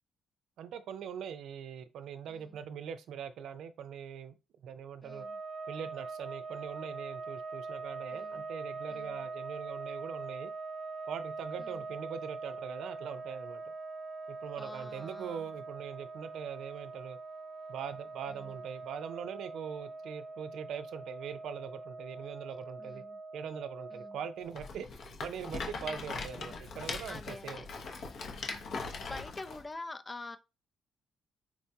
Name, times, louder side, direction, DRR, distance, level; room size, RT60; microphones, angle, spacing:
voice 1, 0.6-5.3 5.7-10.5 11.1-13.6 14.3-17.2 17.7-23.0 23.3-24.9 25.2-27.7, right 7 dB, 75° right, 0.4 m, -42 dB
voice 2, 2.3-2.6 5.0-5.4 8.1-8.4 8.9-9.2 11.6-11.8 14.6-15.5 18.3-18.5 22.8-23.2 23.9-24.1 25.8-26.1 27.1-27.7 28.2-30.4, left 2 dB, 20° left, 0.5 m, -47 dB
sound 1, 5.0-24.7, right 3 dB, 40° right, 0.6 m, -43 dB
Rattle, 24.5-29.6, left 4 dB, 65° left, 0.8 m, -40 dB
4.5 x 2.2 x 2.7 m
cardioid pair, 90°, 0 cm